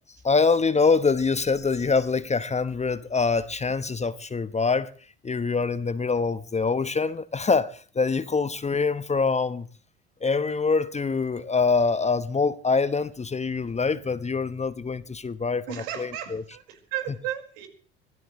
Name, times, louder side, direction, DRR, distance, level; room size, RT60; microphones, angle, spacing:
voice 1, 0.2-4.9 5.2-9.7 10.2-16.4 17.1-17.2, left 4 dB, 20° left, 1.1 m, -25 dB
voice 2, 15.7-17.7, right 11 dB, 70° right, 5.0 m, -34 dB
24.5 x 17.0 x 3.2 m
hypercardioid pair, 70°, 32 cm